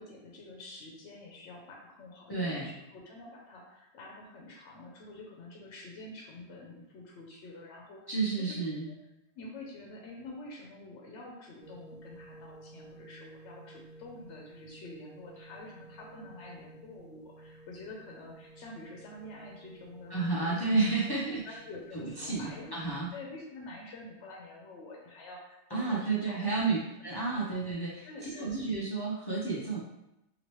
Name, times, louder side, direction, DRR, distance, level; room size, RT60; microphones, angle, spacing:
voice 1, 0.0-8.5 9.3-20.6 21.1-22.8 23.1-26.6 28.0-28.5, left 2 dB, 85° left, -2 dB, 0.9 m, -47 dB
voice 2, 2.3-2.7 8.1-8.9 20.1-21.6 21.9-23.1 25.7-29.8, right 3 dB, 40° left, -5 dB, 0.3 m, -31 dB
sound 1, 11.6-23.0, right 2 dB, 55° right, 1.2 m, -53 dB
2.9 x 2.8 x 3.0 m, 0.87 s
omnidirectional pair, 1.2 m